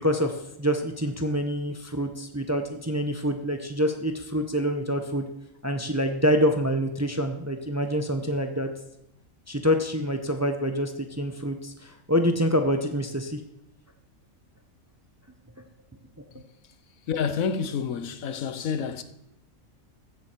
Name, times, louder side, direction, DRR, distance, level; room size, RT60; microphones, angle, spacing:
voice 1, 0.0-5.3 5.6-8.7 9.5-13.4, equal, 15° right, 0.7 m, -26 dB
voice 2, 17.1-19.0, left 6 dB, 80° left, 1.2 m, -28 dB
15.0 x 7.5 x 4.6 m
omnidirectional pair, 1.4 m